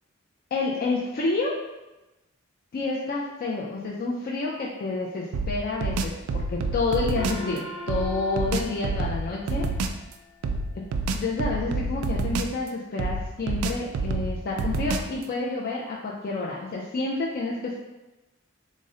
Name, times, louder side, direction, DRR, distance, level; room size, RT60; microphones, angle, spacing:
voice 1, 0.5-1.5 2.7-9.7 11.1-17.8, left 3 dB, 45° left, -4 dB, 0.4 m, -29 dB
sound 1, 5.3-7.5 7.9-10.0 10.4-12.7 13.0-15.2, right 3 dB, 85° right, 0.3 m, -28 dB
Gong, 7.2-10.1, left 1 dB, ahead, 0.7 m, -41 dB
3.7 x 2.0 x 3.7 m, 1.0 s
head